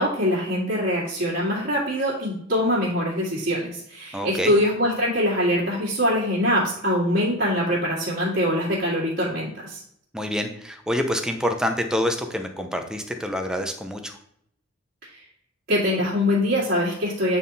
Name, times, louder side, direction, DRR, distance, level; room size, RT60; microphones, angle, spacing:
voice 1, 0.0-9.8 15.7-17.4, equal, 50° right, -10 dB, 2.1 m, -23 dB
voice 2, 4.1-4.6 10.1-14.1, equal, 5° right, 5 dB, 0.6 m, -27 dB
8.9 x 3.7 x 4.0 m, 0.70 s
head